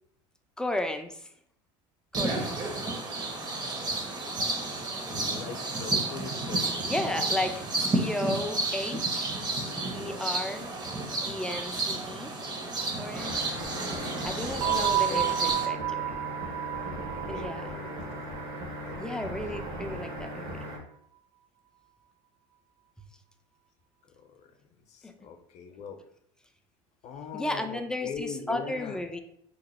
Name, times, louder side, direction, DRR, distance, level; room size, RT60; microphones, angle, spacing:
voice 1, 0.6-1.3 2.2-2.6 6.8-9.4 9.9-10.7 11.2-12.3 13.0-13.5 14.2-16.1 17.3-17.7 19.0-20.7 25.0-25.2 27.3-29.2, left 1 dB, 5° left, 6 dB, 0.3 m, -34 dB
sound 1, 2.1-15.7, right 2 dB, 30° right, 0.7 m, -31 dB
voice 2, 4.4-6.7 14.6-15.3 17.1-18.0 18.8-19.8 24.1-24.5 24.9-26.0 27.0-29.0, left 6 dB, 50° left, 6 dB, 0.6 m, -41 dB
sound 2, 13.2-20.8, equal, 65° right, 1.1 m, -38 dB
sound 3, 14.6-19.2, right 13 dB, 80° right, 0.6 m, -31 dB
2.9 x 2.1 x 4.1 m, 0.69 s
supercardioid pair, 100°, 15 cm